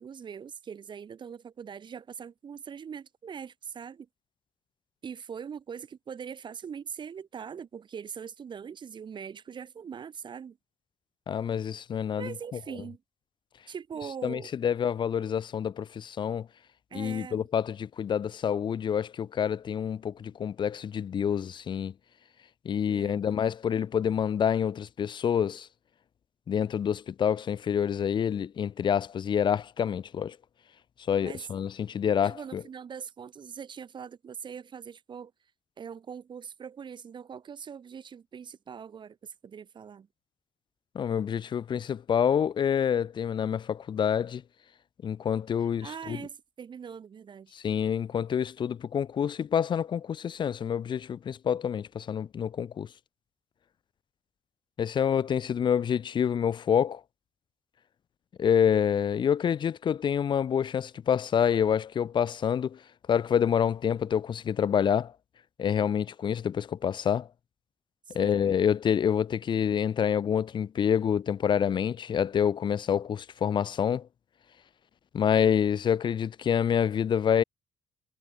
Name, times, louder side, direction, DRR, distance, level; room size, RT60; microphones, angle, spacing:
voice 1, 0.0-4.1 5.0-10.6 12.2-13.0 13.7-14.5 16.9-17.5 22.9-23.2 31.2-31.5 32.2-35.3 35.8-40.1 45.6-47.5 68.1-68.4, right 7 dB, 50° right, 1.8 m, -42 dB
voice 2, 11.3-12.6 14.2-16.5 16.9-21.9 22.6-25.7 26.5-30.4 31.1-32.6 40.9-44.4 45.0-46.2 47.5-52.9 54.8-57.0 58.4-62.8 63.1-65.1 65.6-67.3 68.1-74.1 75.1-77.4, left 8 dB, 45° left, 0.7 m, -27 dB
hypercardioid pair, 55°, 11 cm